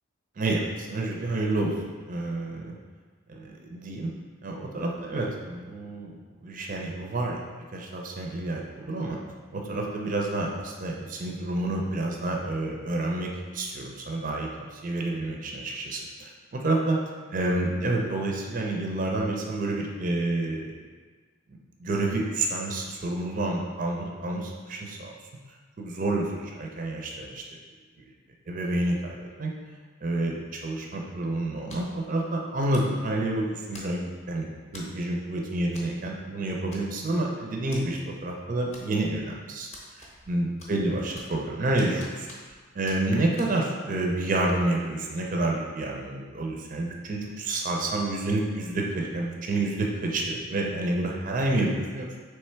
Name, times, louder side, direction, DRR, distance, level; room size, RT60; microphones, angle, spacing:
voice 1, 0.4-1.7 2.1-2.8 3.3-4.1 4.4-6.1 6.4-7.4 7.7-9.2 9.5-17.0 17.3-20.7 21.8-25.1 25.8-27.4 28.5-29.5 30.0-39.7 39.9-42.3 42.7-52.2, right 2 dB, 40° right, 0 dB, 0.4 m, -29 dB
sound 1, 31.7-32.0 32.7-33.0 33.7-34.2 34.7-35.0 35.7-35.9 36.2-36.3 36.7-37.2 37.7-37.8 38.7-39.2 39.7-40.3 40.6-41.4 41.8-42.6 42.9-43.0 43.4-43.5, left 1 dB, 30° left, 0.7 m, -46 dB
3.3 x 3.2 x 4.4 m, 1.5 s
head